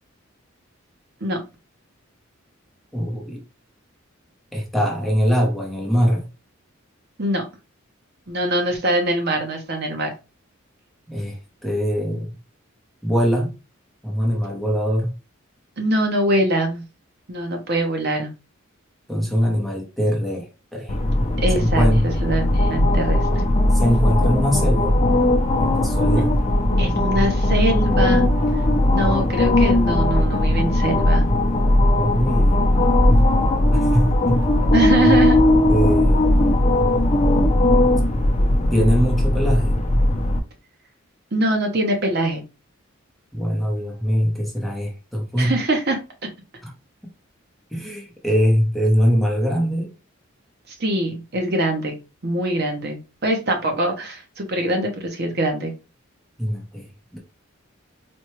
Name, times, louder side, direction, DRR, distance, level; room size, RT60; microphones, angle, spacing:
voice 1, 2.9-3.4 4.5-6.3 11.1-12.3 13.0-13.5 14.0-15.1 19.1-21.0 21.6-22.1 23.7-25.0 25.6-26.3 32.0-32.6 33.7-34.4 35.1-35.2 35.7-36.5 38.7-39.8 43.3-45.5 46.6-46.7 47.7-49.9 56.4-56.9 57.1-57.2, equal, ahead, 0.8 m, -22 dB
voice 2, 8.3-10.1 15.8-16.8 17.3-18.3 21.4-23.3 26.8-28.3 28.9-31.2 34.7-35.4 41.3-42.4 45.4-46.0 50.7-52.0 52.2-55.7, right 1 dB, 50° right, 0.7 m, -23 dB
sound 1, 20.9-40.4, left 1 dB, 35° left, 0.6 m, -18 dB
4.3 x 2.3 x 3.1 m
head